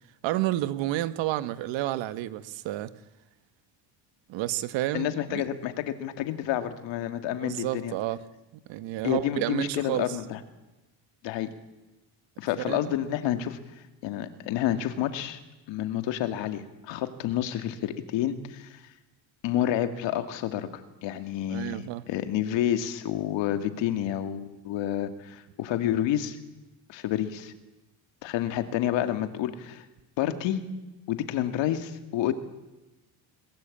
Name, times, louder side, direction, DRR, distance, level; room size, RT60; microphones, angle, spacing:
voice 1, 0.2-2.9 4.3-5.4 7.4-8.2 8.7-10.1 12.7-12.8 21.5-22.0, right 15 dB, 70° right, 13 dB, 1.4 m, -30 dB
voice 2, 4.9-7.9 9.0-10.4 11.2-11.5 12.4-15.4 15.7-18.8 19.4-26.4 26.9-27.5 28.2-29.9 30.2-30.6 31.1-32.3, left 11 dB, 65° left, 9 dB, 2.3 m, -29 dB
21.5 x 21.0 x 8.6 m, 1.0 s
cardioid pair, 155°, 47 cm